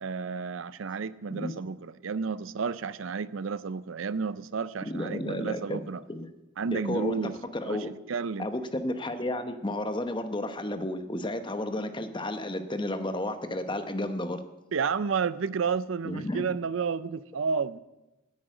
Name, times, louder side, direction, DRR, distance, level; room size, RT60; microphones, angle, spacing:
voice 1, 0.0-6.0 6.6-7.4 7.7-8.5 14.7-17.8, right 5 dB, 80° right, 17 dB, 0.5 m, -31 dB
voice 2, 4.9-6.3 6.7-7.9 8.4-14.4 16.0-16.5, left 1 dB, 25° left, 8 dB, 0.9 m, -32 dB
10.5 x 8.8 x 9.0 m, 1.0 s
head